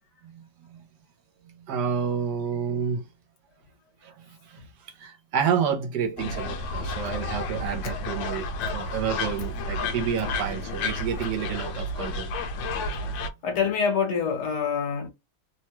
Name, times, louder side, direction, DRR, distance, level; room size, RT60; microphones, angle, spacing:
voice 1, 1.5-3.0 4.0-8.5 8.7-12.3, right 7 dB, 75° right, 1.2 m, -29 dB
sound 1, 6.2-13.3, left 2 dB, 85° left, 1.3 m, -31 dB
voice 2, 13.4-15.1, left 6 dB, 65° left, 1.5 m, -26 dB
3.3 x 2.2 x 2.9 m
omnidirectional pair, 2.0 m